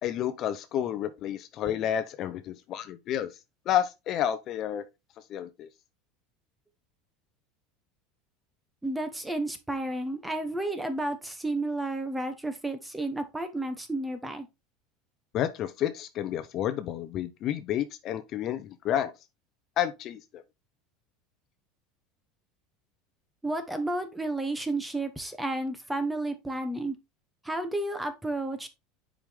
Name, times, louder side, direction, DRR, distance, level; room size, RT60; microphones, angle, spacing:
voice 1, 0.0-3.3 3.7-4.8 5.3-5.7 15.3-19.1 19.8-20.4, left 10 dB, 45° left, 0.7 m, -30 dB
voice 2, 8.8-14.5 23.4-26.9 27.4-28.7, right 2 dB, 5° right, 1.1 m, -32 dB
7.1 x 5.0 x 3.5 m
supercardioid pair, 130°, 0 cm